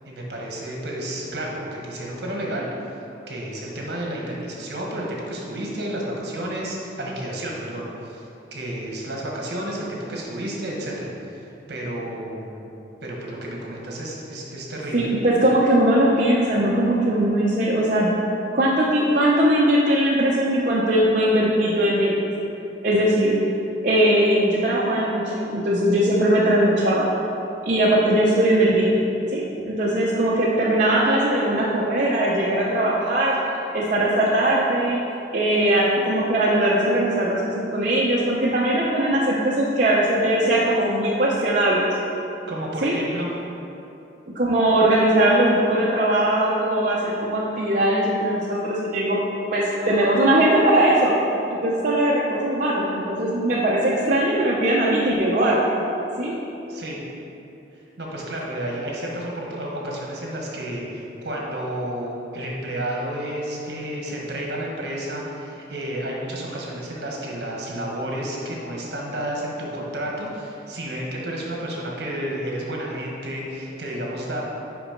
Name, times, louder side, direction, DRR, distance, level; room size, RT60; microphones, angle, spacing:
voice 1, 0.0-2.7 3.3-12.7 13.0-15.1 42.5-43.3 56.7-57.0 58.0-74.4, right 1 dB, 65° right, -2 dB, 1.3 m, -31 dB
voice 2, 14.9-18.1 18.5-22.3 22.8-23.4 23.8-27.1 27.7-28.9 29.3-33.4 33.7-35.0 35.3-41.9 42.8-43.0 44.3-49.2 49.5-51.1 51.5-55.6 56.2-56.3, right 1 dB, 45° right, -6 dB, 0.7 m, -20 dB
5.9 x 5.3 x 5.1 m, 2.9 s
head